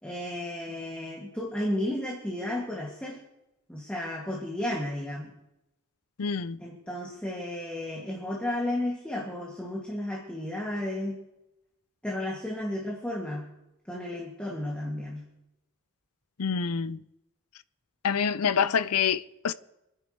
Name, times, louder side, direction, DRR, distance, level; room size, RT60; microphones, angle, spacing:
voice 1, 0.0-3.2 3.7-5.3 6.6-11.2 12.0-13.5 13.9-15.3, left 1 dB, 5° left, 2.5 m, -33 dB
voice 2, 6.2-6.6 16.4-17.0 18.0-19.5, left 6 dB, 85° left, 0.6 m, -27 dB
28.5 x 10.5 x 3.4 m
head